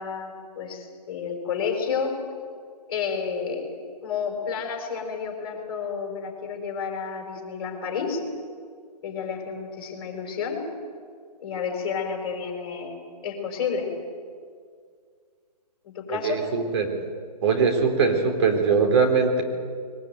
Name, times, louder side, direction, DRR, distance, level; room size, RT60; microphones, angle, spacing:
voice 1, 0.0-2.2 2.9-3.7 4.0-8.2 9.0-10.6 11.4-13.0 13.2-13.9 15.8-16.5, left 6 dB, 35° left, 2 dB, 5.6 m, -30 dB
voice 2, 16.1-16.9 17.4-19.4, right 5 dB, 40° right, 4 dB, 3.7 m, -21 dB
22.5 x 21.0 x 9.3 m, 2.1 s
hypercardioid pair, 150°, 21 cm